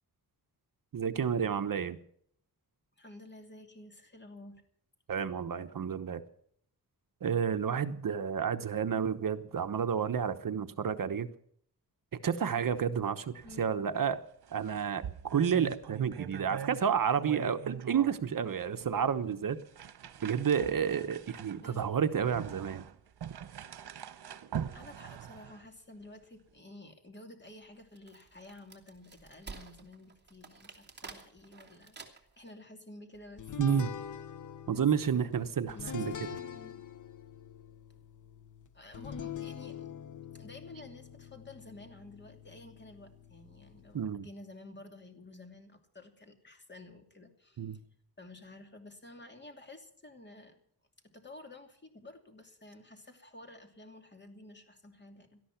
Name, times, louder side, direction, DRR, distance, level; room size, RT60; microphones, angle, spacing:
voice 1, 0.9-2.0 5.1-6.2 7.2-11.3 12.2-14.2 14.5-19.6 20.2-22.9 33.6-33.9 34.7-36.1 43.9-44.3 47.6-47.8, right 7 dB, 55° right, 9 dB, 1.1 m, -30 dB
voice 2, 3.0-4.6 13.4-13.7 21.6-21.9 24.7-33.9 34.7-36.8 37.9-38.0 38.7-39.9 40.3-47.8 48.2-50.6 51.0-55.4, left 2 dB, 25° left, 5 dB, 2.8 m, -52 dB
sound 1, 13.4-13.7 13.9-14.0 14.4-16.9 17.1-18.2 18.8-18.9 19.6-25.7, right 9 dB, 85° right, 1.1 m, -42 dB
Wood, 27.7-32.5, right 4 dB, 25° right, 2.8 m, -50 dB
sound 2, 33.4-44.0, left 8 dB, 50° left, 0.9 m, -45 dB
18.5 x 13.0 x 5.9 m, 0.65 s
wide cardioid pair, 150°, 39 cm